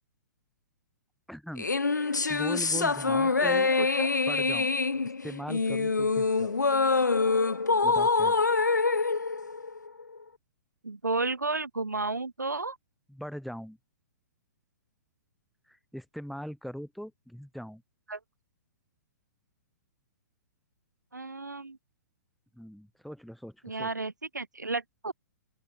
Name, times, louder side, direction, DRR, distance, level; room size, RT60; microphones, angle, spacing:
voice 1, 1.3-3.7 4.3-4.7 5.0-6.6 7.8-8.4 13.1-13.8 15.7-17.8 22.5-23.9, equal, ahead, 4.4 m, -41 dB
sound 1, 1.6-10.2, left 4 dB, 80° left, 0.5 m, -25 dB
voice 2, 3.0-3.4 3.8-4.1 10.8-12.8 18.1-18.2 21.1-21.8 23.6-25.1, right 3 dB, 75° right, 6.3 m, -32 dB
open air
figure-of-eight pair, 115°, 10 cm